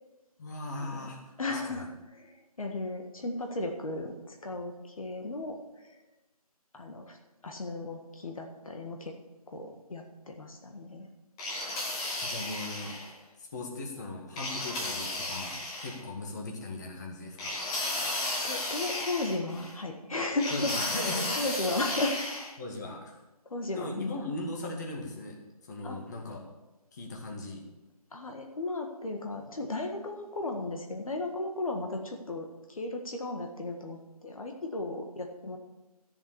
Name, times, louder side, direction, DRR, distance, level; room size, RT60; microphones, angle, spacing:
voice 1, 0.4-1.9 12.2-12.9 13.4-17.5 20.5-21.7 22.6-23.2 23.7-25.4 25.7-26.4 26.9-27.6, left 2 dB, 25° left, 0 dB, 2.0 m, -38 dB
voice 2, 1.4-5.9 6.7-7.2 7.4-9.1 9.5-11.1 18.1-20.7 21.4-22.2 23.5-24.1 25.8-26.0 28.1-35.6, left 2 dB, 60° left, 3 dB, 1.6 m, -35 dB
sound 1, 11.4-13.1 14.4-16.0 17.4-19.7 20.4-22.5, left 2 dB, 10° left, 0.8 m, -34 dB
13.5 x 7.2 x 6.9 m, 1.1 s
figure-of-eight pair, 165°, 20 cm